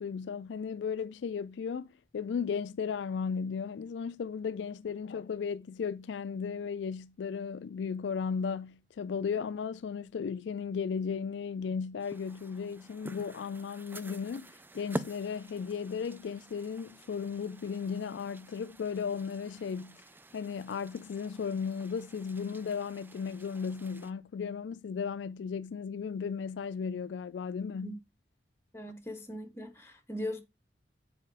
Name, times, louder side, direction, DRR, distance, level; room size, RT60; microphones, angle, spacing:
voice 1, 0.0-20.0 20.3-28.0, left 6 dB, 75° left, 0.3 m, -35 dB
sound 1, 12.0-24.1, right 1 dB, 10° right, 0.3 m, -47 dB
voice 2, 28.7-30.4, left 1 dB, 15° left, 1.3 m, -39 dB
7.6 x 4.9 x 4.8 m
head